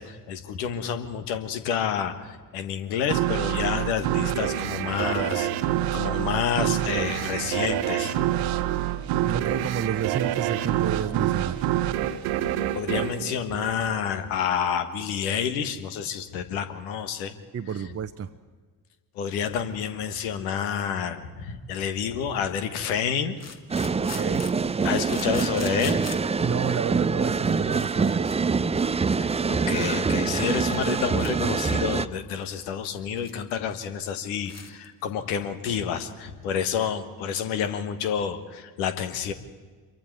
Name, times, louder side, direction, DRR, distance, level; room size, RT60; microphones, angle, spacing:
voice 1, 0.0-8.1 12.7-17.3 19.1-23.4 24.8-26.0 29.2-39.3, left 7 dB, 70° left, 9 dB, 1.6 m, -29 dB
sound 1, 3.1-14.3, right 12 dB, 65° right, 1.2 m, -27 dB
voice 2, 9.2-11.7 17.5-18.3 24.0-24.4 26.4-28.2, right 8 dB, 30° right, 7 dB, 0.9 m, -30 dB
sound 2, 21.5-21.6 23.4-26.4 27.1-27.2 27.4-28.4 28.6-28.8 29.3-29.4 29.7-29.9 30.2-30.3 30.5-30.9 31.2-31.3 31.6-31.7 32.2-33.4 33.7-33.8 34.1-34.2 34.4-34.9, left 5 dB, 30° left, 2.0 m, -42 dB
sound 3, 23.7-32.1, right 5 dB, 15° right, 0.6 m, -25 dB
27.0 x 23.0 x 4.8 m, 1.4 s
figure-of-eight pair, 45°, 47 cm